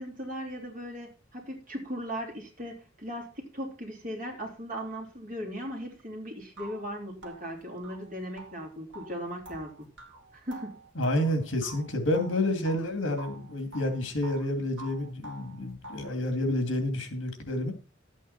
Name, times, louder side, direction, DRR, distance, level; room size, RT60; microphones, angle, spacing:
voice 1, 0.0-9.9 10.3-10.8, equal, 45° right, 3.3 m, -38 dB
sound 1, 6.0-6.1 6.6-12.9 13.2-14.5 14.8-16.2, right 2 dB, 65° right, 2.6 m, -47 dB
voice 2, 11.0-17.7, left 1 dB, 70° left, 2.7 m, -29 dB
12.0 x 8.3 x 4.3 m
head